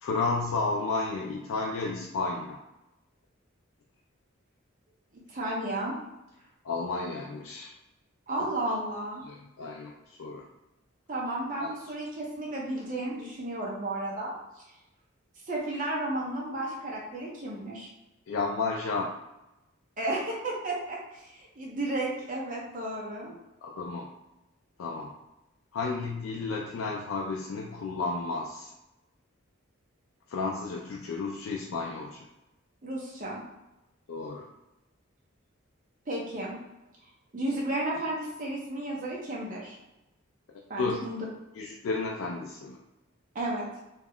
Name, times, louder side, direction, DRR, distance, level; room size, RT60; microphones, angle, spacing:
voice 1, 0.0-2.6 6.6-7.7 8.4-8.5 9.2-10.5 11.6-11.7 18.3-19.1 23.6-24.1 24.8-25.1 25.7-28.7 30.3-32.3 34.1-34.5 40.8-41.0 41.5-42.8, left 3 dB, 75° left, -1 dB, 0.3 m, -32 dB
voice 2, 5.3-6.0 8.3-9.2 11.1-14.3 15.5-17.9 20.0-23.3 32.8-33.4 36.1-36.6 37.3-39.8 40.7-41.2 43.3-43.7, right 1 dB, 40° right, -3 dB, 0.7 m, -33 dB
2.3 x 2.1 x 3.5 m, 0.95 s
head